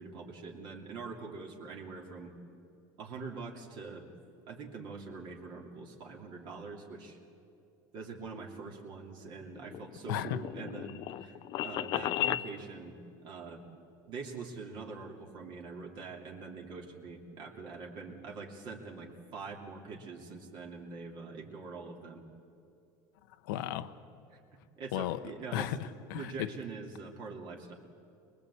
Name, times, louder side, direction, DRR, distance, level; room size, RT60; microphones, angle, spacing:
voice 1, 0.0-2.3 3.0-4.1 4.5-7.2 7.9-13.0 13.2-13.6 14.1-22.2 24.3-24.4 24.8-25.7 26.1-27.7, right 4 dB, 45° right, 0 dB, 2.9 m, -44 dB
sound 1, 9.4-12.5, left 13 dB, 45° left, 0.6 m, -35 dB
voice 2, 10.1-10.4 23.4-24.0 24.9-25.2 25.5-26.5, left 11 dB, 85° left, 9 dB, 1.1 m, -35 dB
24.0 x 21.0 x 8.4 m, 2.6 s
cardioid pair, 150°, 10 cm